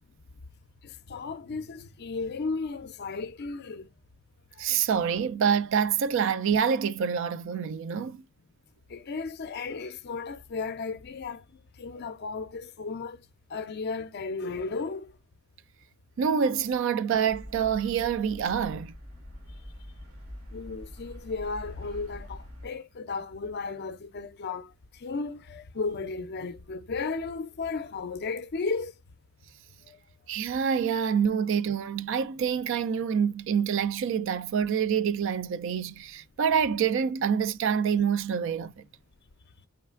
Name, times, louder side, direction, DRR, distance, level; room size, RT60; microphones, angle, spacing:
voice 1, 0.8-3.9 4.5-4.7 8.9-13.2 13.5-15.2 20.5-28.9 29.8-30.0, left 4 dB, 50° left, 0.4 m, -35 dB
voice 2, 4.6-8.2 16.2-18.9 30.3-38.7, right 7 dB, 60° right, 0.3 m, -26 dB
sound 1, 17.3-22.7, left 1 dB, 80° right, 1.7 m, -44 dB
4.4 x 3.2 x 2.4 m
head